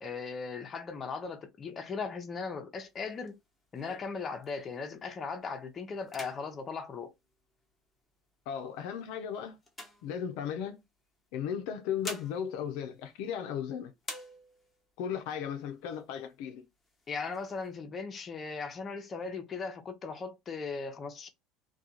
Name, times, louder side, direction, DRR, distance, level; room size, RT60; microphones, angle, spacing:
voice 1, 0.0-3.4 3.7-7.1 17.1-21.3, left 5 dB, 35° left, 0.7 m, -38 dB
sound 1, 2.8-5.0 5.4-5.7 6.0-7.9 8.6-10.7 11.6-13.6 14.0-14.9 15.3-15.4 15.7-16.3 16.8-17.7, left 1 dB, 15° left, 1.0 m, -48 dB
voice 2, 8.5-9.6 10.0-10.8 11.3-13.9 15.0-16.7, left 8 dB, 75° left, 0.5 m, -36 dB
2.4 x 2.3 x 2.8 m
supercardioid pair, 100°, 0 cm